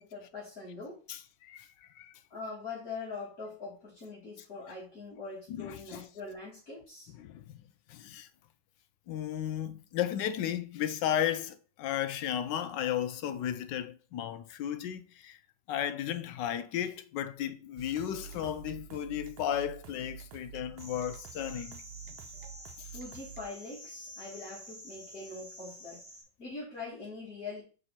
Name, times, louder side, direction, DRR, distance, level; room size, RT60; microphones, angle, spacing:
voice 1, 0.0-1.0 2.3-7.1 22.3-26.0 26.4-27.6, left 3 dB, 45° left, 3.3 m, -43 dB
voice 2, 1.1-2.1 5.5-6.0 7.2-7.5 7.9-8.3 9.1-15.4 15.7-21.8, left 10 dB, 75° left, 1.1 m, -34 dB
sound 1, 17.8-23.4, right 9 dB, 85° right, 1.6 m, -48 dB
sound 2, 20.8-26.2, equal, 15° left, 2.9 m, -49 dB
5.5 x 4.3 x 4.2 m
omnidirectional pair, 2.2 m